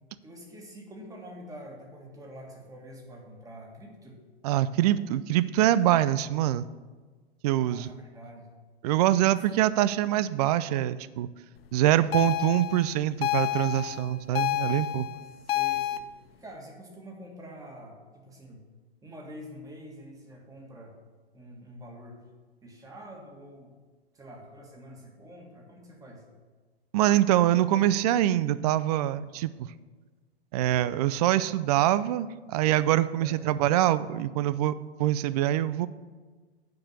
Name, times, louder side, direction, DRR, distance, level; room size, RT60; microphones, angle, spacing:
voice 1, 0.2-4.2 7.5-8.5 9.2-9.3 15.3-16.1 16.3-18.6 19.0-21.0 21.3-22.3 22.6-23.7 24.1-26.2 33.2-33.6, equal, 10° right, 1 dB, 1.8 m, -46 dB
voice 2, 4.4-6.7 7.4-7.9 8.8-11.3 11.7-15.1 26.9-29.7 30.5-35.9, right 13 dB, 40° right, 16 dB, 0.4 m, -24 dB
sound 1, 12.1-16.0, left 14 dB, 70° left, 0.6 m, -29 dB
9.1 x 5.0 x 7.5 m, 1.3 s
hypercardioid pair, 115°, 31 cm